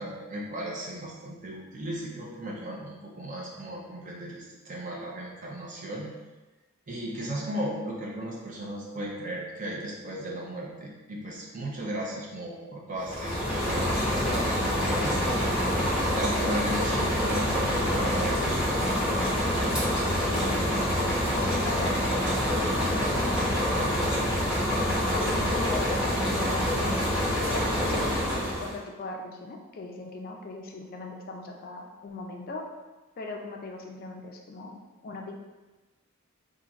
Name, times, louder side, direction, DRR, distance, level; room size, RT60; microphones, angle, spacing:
voice 1, 0.0-6.1 6.9-18.6, right 1 dB, 35° right, -3 dB, 0.6 m, -36 dB
sound 1, 13.0-28.8, equal, 5° right, 0.8 m, -26 dB
voice 2, 20.3-24.6 25.1-27.0 27.5-32.7 33.2-35.3, left 2 dB, 45° left, 1 dB, 0.3 m, -39 dB
2.5 x 2.5 x 4.0 m, 1.2 s
head